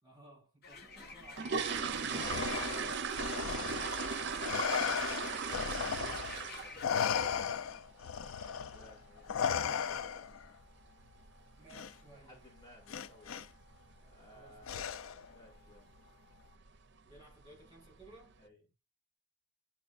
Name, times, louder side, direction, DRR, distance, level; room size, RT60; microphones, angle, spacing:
voice 1, 0.0-1.6 6.3-6.9 8.3-8.9 11.6-12.6 14.3-14.9 17.0-18.4, right 2 dB, 20° right, 4.3 m, -59 dB
sound 1, 0.6-6.9, left 4 dB, 50° left, 1.1 m, -50 dB
sound 2, 1.0-6.9 7.2-7.5 7.8-7.9 8.3-8.4 8.8-9.0 9.3-9.4 10.0-10.1 10.3-10.5 11.0-11.3 11.6-11.7 12.1-12.3 12.6-12.7 13.1-13.2 13.8-14.2 14.5-14.8 15.2-15.3 15.7-15.8 16.5-16.7 17.1-17.6 18.0-18.1, right 6 dB, 55° right, 0.6 m, -37 dB
voice 2, 1.7-2.8 3.5-3.9 4.1-4.6 6.3-7.6 8.3-10.3 12.0-13.5 14.0-15.9 18.4-18.6, left 1 dB, 20° left, 2.6 m, -57 dB
Respiratory sounds, 2.1-6.5 6.8-10.4 11.7-11.9 12.9-13.4 14.7-15.3, left 7 dB, 75° left, 0.4 m, -36 dB
11.0 x 4.4 x 2.5 m
head